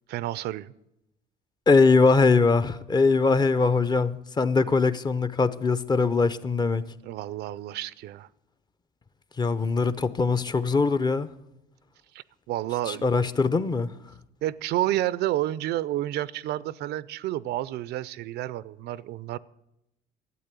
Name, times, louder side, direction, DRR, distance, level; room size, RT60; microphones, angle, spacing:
voice 1, 0.1-0.7 7.0-8.3 12.1-13.1 14.4-19.4, right 14 dB, 75° right, 0.5 m, -30 dB
voice 2, 1.7-6.8 9.4-11.3 12.9-13.9, left 4 dB, 25° left, 0.6 m, -22 dB
12.5 x 8.5 x 8.2 m
cardioid pair, 110°, 17 cm